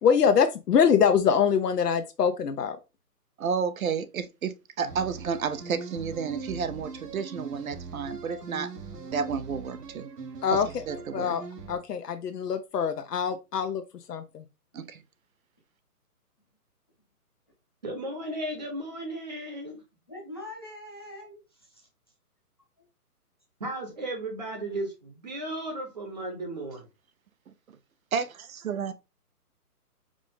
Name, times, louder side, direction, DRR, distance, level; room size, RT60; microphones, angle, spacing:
voice 1, 0.0-2.8 10.4-10.8 11.1-11.4 11.7-13.8 14.1-14.4, left 7 dB, 90° left, 0.8 m, -24 dB
voice 2, 3.4-8.7 9.1-10.1 10.9-11.3 14.7-15.0 28.1-28.9, right 6 dB, 60° right, 0.6 m, -31 dB
sound 1, 4.8-11.8, right 3 dB, 80° right, 1.1 m, -41 dB
voice 3, 17.8-19.8 23.6-26.8, right 1 dB, 30° right, 0.9 m, -35 dB
voice 4, 20.1-21.9 28.9-29.0, left 1 dB, 15° left, 0.6 m, -43 dB
4.9 x 2.1 x 3.7 m
hypercardioid pair, 165°, 46 cm